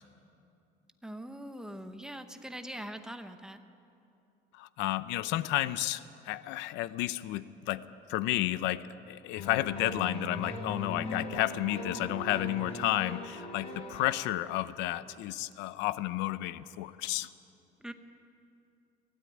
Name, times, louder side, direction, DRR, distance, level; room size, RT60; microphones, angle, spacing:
voice 1, 1.0-3.6 17.8-17.9, right 1 dB, 5° right, 8 dB, 0.8 m, -42 dB
voice 2, 4.5-7.8 8.1-17.3, left 15 dB, 90° left, 15 dB, 0.7 m, -32 dB
sound 1, 9.4-14.3, left 1 dB, 35° left, 3.6 m, -40 dB
22.5 x 16.5 x 9.4 m, 2.7 s
cardioid pair, 175°, 18 cm